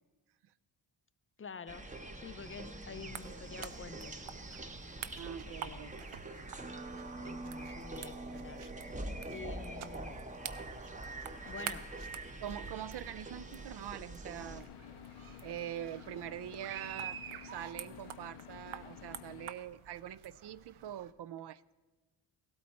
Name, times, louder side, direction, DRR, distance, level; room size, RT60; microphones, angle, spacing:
voice 1, 1.4-1.9 2.1-4.2 5.4-6.0 7.2-8.7 9.3-10.2 11.4-11.9, left 5 dB, 30° left, 0.4 m, -48 dB
sound 1, 1.7-14.6, right 2 dB, 15° right, 0.7 m, -44 dB
sound 2, 3.1-21.1, right 9 dB, 85° right, 0.8 m, -49 dB
voice 2, 5.1-5.9 12.4-14.7 15.4-17.2 17.4-21.6, right 11 dB, 55° right, 0.5 m, -44 dB
sound 3, 14.4-19.5, left 11 dB, 85° left, 0.6 m, -52 dB
16.5 x 12.5 x 4.2 m
wide cardioid pair, 125°, 49 cm